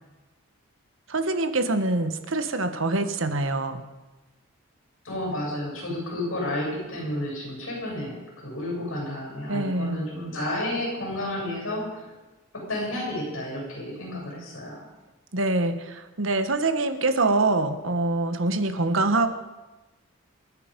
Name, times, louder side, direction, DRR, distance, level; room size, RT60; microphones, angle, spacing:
voice 1, 1.1-3.8 9.5-10.1 15.3-19.4, right 2 dB, 65° right, 9 dB, 1.3 m, -25 dB
voice 2, 5.0-12.1 12.5-14.8, left 1 dB, 70° left, -2 dB, 7.7 m, -31 dB
28.0 x 9.7 x 5.3 m, 1.1 s
head